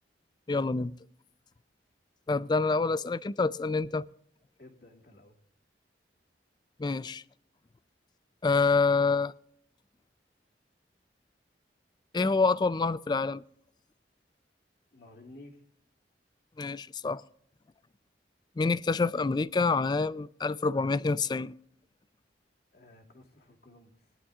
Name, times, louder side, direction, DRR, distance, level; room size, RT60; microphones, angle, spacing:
voice 1, 0.5-0.9 2.3-4.1 6.8-7.2 8.4-9.3 12.1-13.4 16.6-17.2 18.6-21.5, left 4 dB, 25° left, 0.3 m, -27 dB
voice 2, 4.6-5.4 14.9-15.6 22.7-24.2, left 2 dB, 60° left, 2.3 m, -53 dB
21.0 x 11.0 x 2.4 m
head